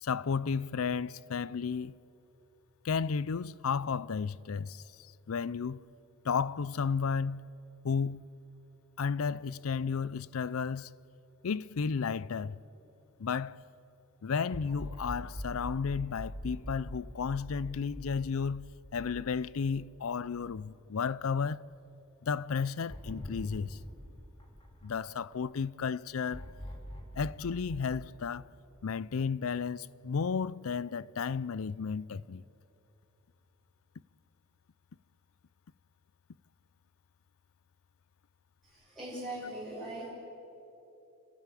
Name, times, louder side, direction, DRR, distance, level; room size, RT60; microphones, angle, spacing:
voice 1, 0.0-1.9 2.8-5.8 6.2-7.5 7.8-8.2 9.0-10.9 11.4-12.6 13.2-13.6 14.2-21.7 22.2-23.8 24.8-26.5 27.1-28.5 28.8-32.4, left 5 dB, 80° left, 0.5 m, -33 dB
sound 1, 14.5-20.8 21.2-21.3 22.9-25.4 26.3-29.1, equal, 25° left, 3.8 m, -44 dB
voice 2, 38.6-40.1, right 1 dB, ahead, 6.2 m, -40 dB
29.5 x 13.0 x 9.2 m
head